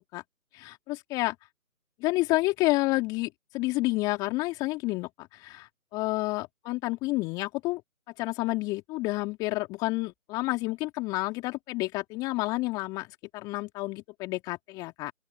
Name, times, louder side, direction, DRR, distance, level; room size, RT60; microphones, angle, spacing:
voice 1, 0.5-1.3 2.0-7.8 8.2-13.1 13.3-15.1, left 21 dB, 10° left, 2.8 m, -30 dB
open air
figure-of-eight pair, 155°, 43 cm